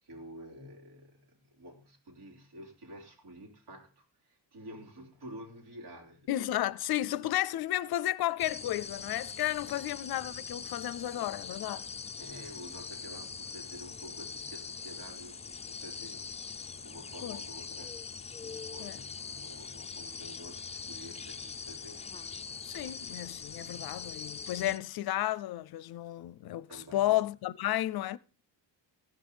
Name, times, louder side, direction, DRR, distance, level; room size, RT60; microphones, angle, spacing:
voice 1, 0.0-6.5 9.6-9.9 12.2-16.5 16.8-18.0 18.4-22.3 22.7-22.8 23.6-24.0 26.7-27.2, equal, 70° right, 3.7 m, -50 dB
voice 2, 6.3-11.9 17.2-17.4 18.8-19.0 22.6-28.2, left 14 dB, 60° left, 0.6 m, -32 dB
sound 1, 8.4-24.8, left 5 dB, 15° left, 0.4 m, -42 dB
15.5 x 6.2 x 5.1 m
cardioid pair, 105°, 42 cm